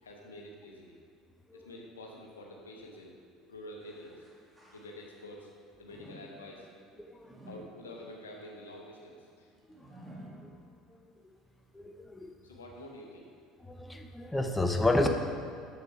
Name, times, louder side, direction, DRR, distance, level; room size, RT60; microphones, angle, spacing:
voice 1, 0.0-0.9 1.5-3.1 3.5-4.2 4.7-5.5 5.8-6.7 7.4-9.5 12.4-13.3, left 1 dB, 85° left, 0 dB, 1.1 m, -47 dB
sound 1, 3.8-5.4 5.9-11.1 11.6-11.7 12.6-12.7, right 1 dB, 15° right, 1.7 m, -53 dB
voice 2, 7.0-7.3 9.8-10.1 10.4-10.5 11.7-12.3 13.6-15.1, left 2 dB, 10° left, 4 dB, 0.7 m, -31 dB
7.7 x 6.6 x 4.6 m, 2.3 s
figure-of-eight pair, 65°, 0 cm